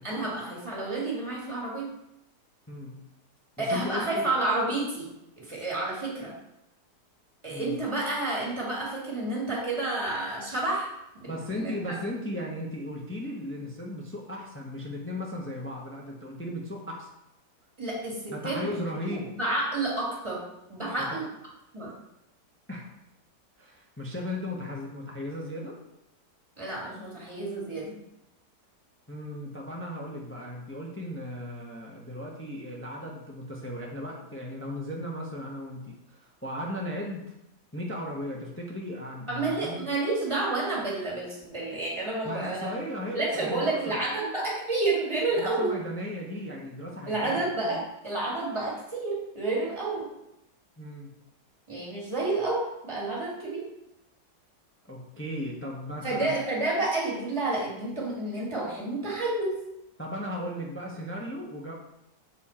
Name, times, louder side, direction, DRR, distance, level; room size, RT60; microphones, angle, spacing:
voice 1, 0.0-1.9 3.6-5.1 5.4-6.3 7.4-10.9 11.1-12.0 17.8-18.7 19.1-20.4 20.7-21.3 21.7-21.9 26.6-27.9 39.3-42.7 43.1-45.8 47.1-50.1 51.7-53.6 56.0-59.5, right 2 dB, 15° right, -5 dB, 2.1 m, -30 dB
voice 2, 3.6-4.3 7.5-7.7 11.2-17.1 18.3-19.3 21.0-21.2 22.7-22.9 23.6-25.8 29.1-37.2 37.7-39.8 42.2-44.0 45.4-47.4 50.8-51.1 54.8-56.4 60.0-61.7, left 1 dB, 10° left, -2 dB, 0.8 m, -36 dB
7.4 x 4.3 x 4.3 m, 0.87 s
omnidirectional pair, 1.8 m